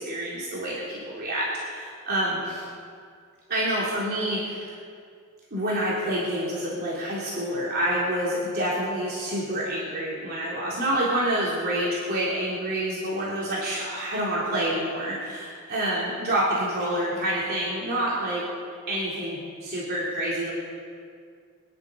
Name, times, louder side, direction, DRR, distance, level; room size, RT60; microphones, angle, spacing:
voice 1, 0.0-2.7 3.5-4.7 5.5-18.4 18.9-20.5, right 1 dB, 45° right, -7 dB, 3.3 m, -27 dB
24.0 x 10.5 x 5.2 m, 2.2 s
head